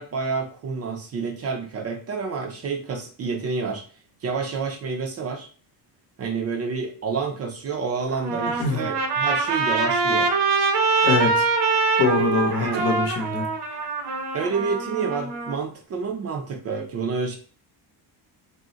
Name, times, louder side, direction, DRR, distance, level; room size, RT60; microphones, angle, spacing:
voice 1, 0.0-3.8 4.2-5.5 6.2-10.3 12.6-13.0 14.3-17.4, right 5 dB, 35° right, 3 dB, 0.4 m, -29 dB
Trumpet, 8.1-15.5, right 4 dB, 65° right, 0.7 m, -24 dB
voice 2, 11.0-11.5 12.0-13.5, left 4 dB, 55° left, 2 dB, 0.8 m, -23 dB
2.4 x 2.0 x 3.8 m, 0.41 s
cardioid pair, 160°, 42 cm